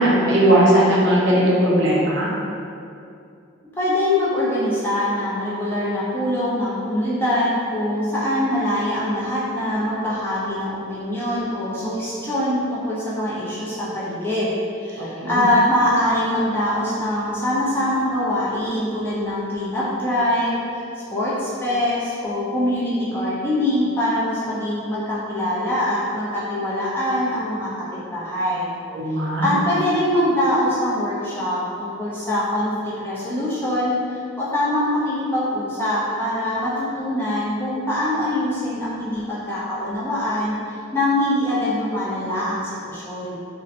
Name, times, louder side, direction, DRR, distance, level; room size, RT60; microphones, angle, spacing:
voice 1, 0.0-2.3 15.0-15.4 28.9-29.5, right 1 dB, 55° right, -5 dB, 0.5 m, -18 dB
voice 2, 3.8-20.8 21.1-28.7 29.4-43.4, left 1 dB, 10° left, -9 dB, 0.4 m, -23 dB
2.6 x 2.0 x 2.5 m, 2.5 s
head